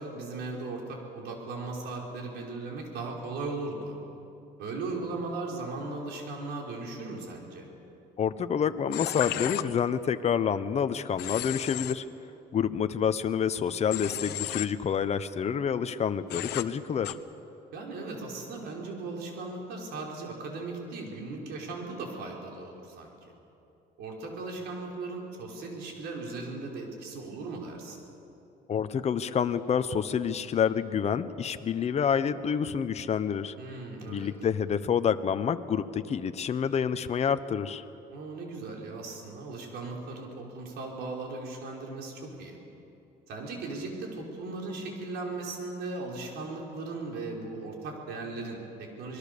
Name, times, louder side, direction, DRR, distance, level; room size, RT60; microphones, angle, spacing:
voice 1, 0.0-3.9 4.6-7.7 17.7-23.3 24.0-28.0 33.6-34.3 38.1-42.6 43.3-49.2, right 3 dB, 80° right, 0 dB, 5.1 m, -37 dB
voice 2, 8.2-12.0 12.5-17.2 28.7-33.5 34.1-37.8, left 7 dB, 40° left, 11 dB, 1.0 m, -28 dB
Human voice / Train, 8.9-9.6 11.2-11.9 13.9-14.7 16.3-16.6 17.0-17.1, left 15 dB, 80° left, 0.9 m, -33 dB
26.0 x 21.5 x 6.9 m, 2.8 s
cardioid pair, 110°, 17 cm